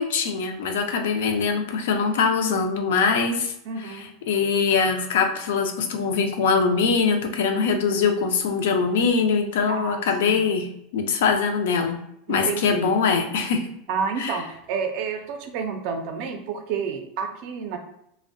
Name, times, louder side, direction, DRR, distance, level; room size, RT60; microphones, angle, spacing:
voice 1, 0.0-3.5 3.8-3.9 4.3-10.7 10.9-12.0 12.3-13.7 14.2-14.4, left 5 dB, 80° left, 5 dB, 0.4 m, -22 dB
voice 2, 3.7-4.1 9.7-10.4 12.3-12.9 13.9-17.8, right 6 dB, 50° right, 5 dB, 0.4 m, -30 dB
2.6 x 2.0 x 2.5 m, 0.75 s
supercardioid pair, 165°, 0 cm